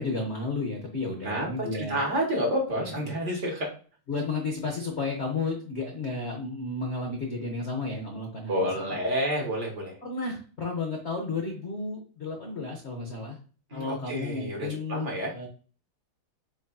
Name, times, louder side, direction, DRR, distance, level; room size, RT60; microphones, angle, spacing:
voice 1, 0.0-2.0 2.7-3.4 4.1-8.9 10.0-13.4 13.7-15.5, left 3 dB, 55° left, 0 dB, 0.7 m, -33 dB
voice 2, 1.2-3.7 8.5-10.0 13.7-15.3, equal, 40° right, 0 dB, 1.5 m, -29 dB
7.8 x 2.6 x 2.3 m, 0.39 s
omnidirectional pair, 2.3 m